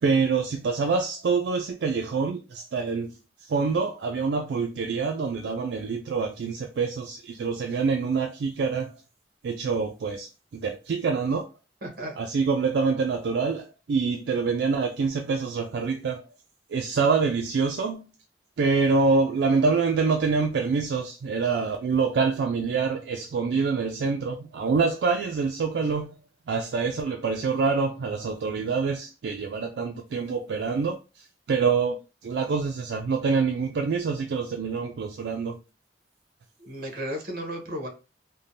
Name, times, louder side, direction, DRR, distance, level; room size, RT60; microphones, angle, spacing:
voice 1, 0.0-3.1 3.4-8.9 9.4-11.5 12.2-16.3 16.7-18.0 18.6-26.2 26.5-35.6, right 4 dB, 75° right, 0.3 m, -26 dB
voice 2, 11.8-12.2 36.6-37.9, equal, 55° right, 0.9 m, -34 dB
3.3 x 2.1 x 2.6 m
head